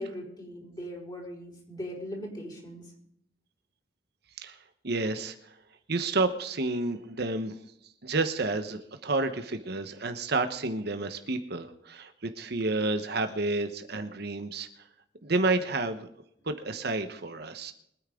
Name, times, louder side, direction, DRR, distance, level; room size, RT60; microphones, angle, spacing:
voice 1, 0.0-2.9, equal, 20° left, -1 dB, 5.3 m, -39 dB
voice 2, 4.8-5.6 5.9-7.6 8.0-14.7 15.2-16.1 16.4-17.7, right 3 dB, 60° right, 8 dB, 1.1 m, -30 dB
24.0 x 9.7 x 3.8 m, 0.73 s
head